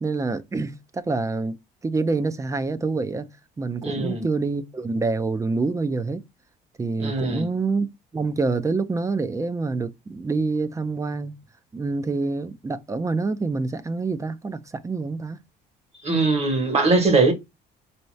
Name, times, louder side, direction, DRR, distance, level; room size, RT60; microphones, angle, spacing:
voice 1, 0.0-1.6 1.8-6.2 6.8-7.9 8.1-11.4 11.7-15.4, right 3 dB, 20° right, 0.5 m, -26 dB
voice 2, 3.8-4.2 7.0-7.5 16.0-17.3, right 3 dB, 40° right, 1.4 m, -21 dB
4.6 x 2.8 x 3.2 m
cardioid pair, 110°, 17 cm